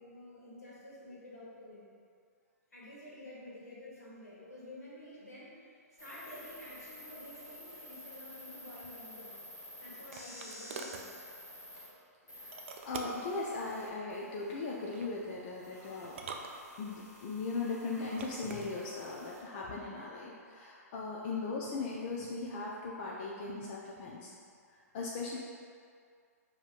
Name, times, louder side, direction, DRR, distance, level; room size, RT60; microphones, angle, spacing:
voice 1, 0.0-1.9 2.7-9.5 9.8-11.1 11.8-11.9, left 1 dB, 75° left, -8 dB, 1.4 m, -50 dB
sound 1, 6.0-11.9 12.3-19.4, left 1 dB, 90° left, 1.3 m, -51 dB
sound 2, 9.3-11.1 12.5-13.3 14.7-15.1 16.0-17.1 17.9-18.7, right 4 dB, 45° right, 0.3 m, -45 dB
voice 2, 12.8-16.2 16.8-24.3 24.9-25.4, left 3 dB, 40° left, -4 dB, 0.4 m, -38 dB
5.4 x 2.8 x 2.4 m, 2.2 s
figure-of-eight pair, 115°, 9 cm